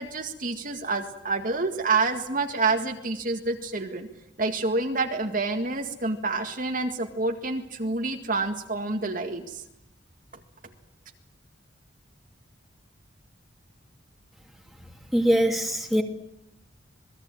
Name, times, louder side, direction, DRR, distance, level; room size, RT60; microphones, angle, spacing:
voice 1, 0.0-4.1 4.4-9.6, right 3 dB, 45° right, 5 dB, 2.0 m, -28 dB
voice 2, 15.1-16.0, equal, ahead, 3 dB, 2.5 m, -22 dB
27.0 x 20.0 x 9.0 m, 0.80 s
head